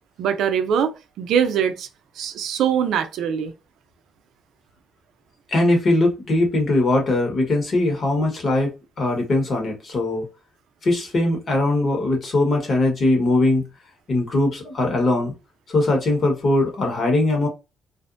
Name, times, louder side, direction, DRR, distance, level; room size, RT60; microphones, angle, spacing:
voice 1, 0.2-1.9 2.2-3.5, right 8 dB, 80° right, 0.4 m, -22 dB
voice 2, 5.5-10.2 10.8-13.7 14.1-15.3 15.7-17.5, left 2 dB, 50° left, 1.2 m, -20 dB
2.5 x 2.1 x 2.5 m
cardioid pair, 90°, 0 cm